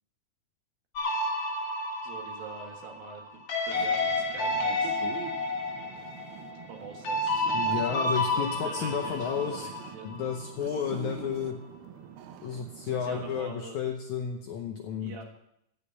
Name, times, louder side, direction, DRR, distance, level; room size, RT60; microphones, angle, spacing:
sound 1, 1.0-10.4, left 2 dB, 55° left, 1.7 m, -31 dB
voice 1, 2.0-5.0 6.7-7.4 8.0-10.1 12.9-13.8 15.0-15.2, right 5 dB, 75° right, 2 dB, 3.4 m, -45 dB
sound 2, 3.7-13.4, right 8 dB, 90° right, 2.8 m, -45 dB
voice 2, 7.5-9.7 10.0-11.6 12.4-15.2, left 7 dB, 75° left, 3 dB, 1.8 m, -32 dB
14.5 x 5.4 x 8.5 m, 0.78 s
omnidirectional pair, 4.3 m